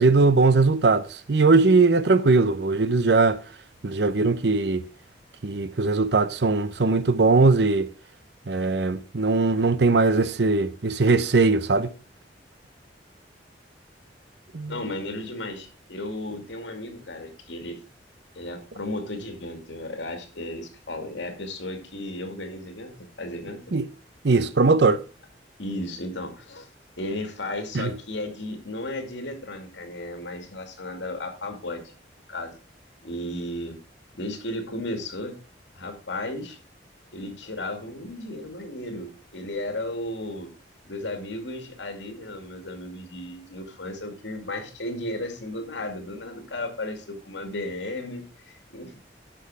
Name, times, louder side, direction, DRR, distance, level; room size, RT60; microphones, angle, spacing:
voice 1, 0.0-3.4 3.8-4.8 5.4-7.9 8.5-11.9 14.5-14.7 23.7-23.9 24.2-25.0 27.7-27.9, right 3 dB, 65° right, 0.7 m, -20 dB
voice 2, 14.7-17.8 18.4-23.6 25.6-26.7 27.0-31.8 32.3-32.5 33.0-33.8 34.1-35.4 35.8-36.6 37.1-40.5 40.8-49.0, left 1 dB, 80° left, 2.3 m, -34 dB
10.0 x 6.3 x 4.7 m
head